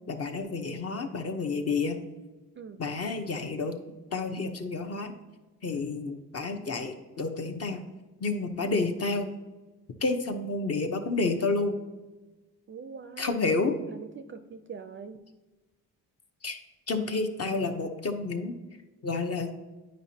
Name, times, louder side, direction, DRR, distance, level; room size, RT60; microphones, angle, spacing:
voice 1, 0.1-2.0 2.8-3.7 4.1-5.1 5.6-7.8 8.2-9.3 10.0-11.8 13.2-13.7 16.4-16.6 16.9-18.5 19.0-19.5, left 3 dB, 40° left, 6 dB, 0.8 m, -30 dB
voice 2, 12.7-15.2, right 5 dB, 35° right, 9 dB, 0.4 m, -43 dB
9.0 x 5.1 x 2.8 m, 1.2 s
cardioid pair, 90°, 37 cm